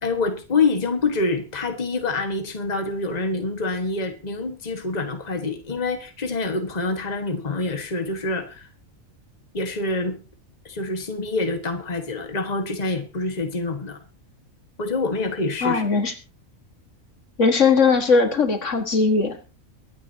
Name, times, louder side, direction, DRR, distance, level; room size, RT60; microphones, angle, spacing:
voice 1, 0.0-8.7 9.5-10.2 10.6-14.0 14.8-15.8, left 3 dB, 30° left, 5 dB, 1.6 m, -26 dB
voice 2, 15.6-16.1 17.4-19.5, left 4 dB, 65° left, 6 dB, 2.0 m, -19 dB
23.5 x 9.4 x 2.8 m, 0.32 s
omnidirectional pair, 1.4 m